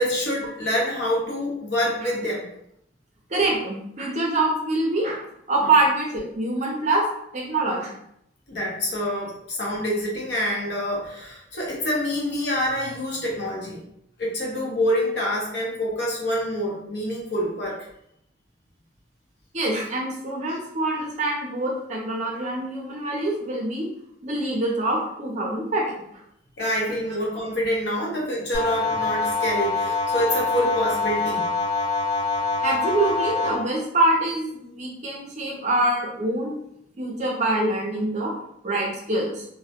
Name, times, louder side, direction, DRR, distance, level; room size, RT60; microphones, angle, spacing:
voice 1, 0.0-2.5 8.5-13.8 14.2-17.8 26.6-31.4, equal, 65° left, -3 dB, 0.7 m, -26 dB
voice 2, 3.3-5.2 5.5-7.1 7.3-8.0 19.5-23.9 24.2-26.0 32.6-36.5 37.0-38.3 38.6-39.5, right 2 dB, 40° right, -1 dB, 0.5 m, -25 dB
sound 1, 28.5-33.5, left 3 dB, 35° left, 1.0 m, -25 dB
2.1 x 2.1 x 2.8 m, 0.75 s
head